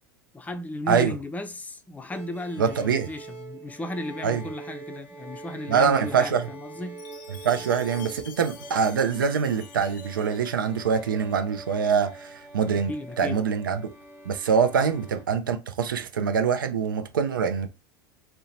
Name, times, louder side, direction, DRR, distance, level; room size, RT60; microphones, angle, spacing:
voice 1, 0.3-7.0 12.9-13.4 14.8-14.9, left 1 dB, 15° left, 0.5 m, -35 dB
sound 1, 2.1-15.2, right 3 dB, 15° right, 1.1 m, -44 dB
voice 2, 2.6-3.1 4.2-4.4 5.7-6.5 7.3-13.8 14.2-17.7, right 6 dB, 85° right, 0.5 m, -24 dB
Chime, 7.0-11.1, left 7 dB, 70° left, 0.6 m, -48 dB
2.8 x 2.2 x 3.9 m
hypercardioid pair, 85°, 11 cm